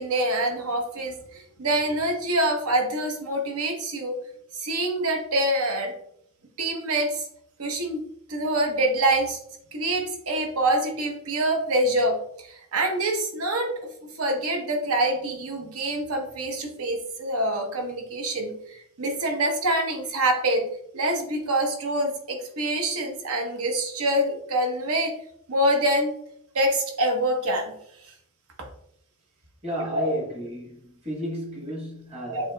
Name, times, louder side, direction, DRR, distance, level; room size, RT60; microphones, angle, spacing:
voice 1, 0.0-4.2 4.6-5.9 6.6-7.3 7.6-8.0 8.3-9.4 9.7-12.2 12.5-13.9 14.2-20.6 20.9-25.1 25.5-26.1 26.5-27.7 29.9-30.1 32.3-32.5, right 1 dB, 70° right, 0.9 m, -25 dB
voice 2, 29.6-32.5, equal, 30° right, 1.1 m, -32 dB
7.2 x 2.9 x 2.2 m
head